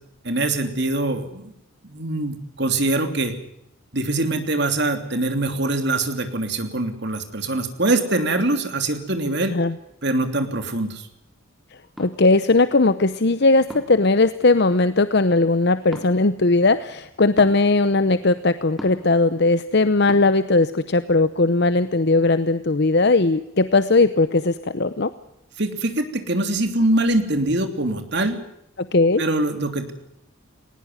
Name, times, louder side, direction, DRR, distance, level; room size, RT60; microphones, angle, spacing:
voice 1, 0.2-1.5 1.8-3.3 3.9-9.6 10.0-11.1 25.6-28.4 29.2-29.9, right 2 dB, 55° right, 7 dB, 3.2 m, -23 dB
voice 2, 12.0-25.1 28.8-29.2, left 3 dB, 50° left, 13 dB, 0.8 m, -18 dB
sound 1, 12.0-12.1 13.7-14.0 15.9-16.1 17.4-17.6 18.8-19.1 20.1-20.2, equal, ahead, 3.8 m, -35 dB
19.5 x 19.5 x 9.5 m, 0.80 s
head